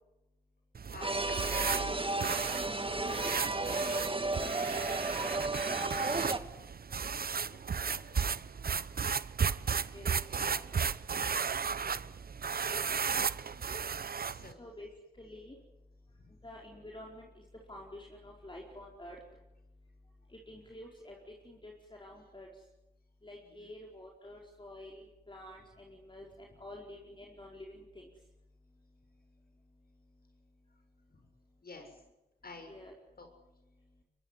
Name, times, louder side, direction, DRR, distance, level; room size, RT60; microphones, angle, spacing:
sound 1, 0.7-14.5, right 6 dB, 60° right, 0.9 m, -34 dB
voice 1, 0.9-1.4 7.5-8.2 11.7-12.1 12.7-14.7 16.1-16.4 22.2-22.3 23.4-23.8 24.2-24.3 30.7-30.8 31.1-31.3 31.6-32.0 32.4-32.7 33.2-33.3, left 3 dB, 60° left, 6 dB, 6.9 m, -53 dB
sound 2, 1.0-6.4, right 2 dB, 30° right, 2.0 m, -33 dB
voice 2, 2.6-3.3 3.7-3.8 9.9-10.6 14.6-14.9 15.2-15.6 16.4-17.4 17.7-19.2 20.3-21.2 21.4-22.5 23.2-28.1 32.7-32.9, left 1 dB, 30° left, -1 dB, 4.7 m, -49 dB
23.5 x 22.5 x 9.8 m, 0.95 s
cardioid pair, 65°, 17 cm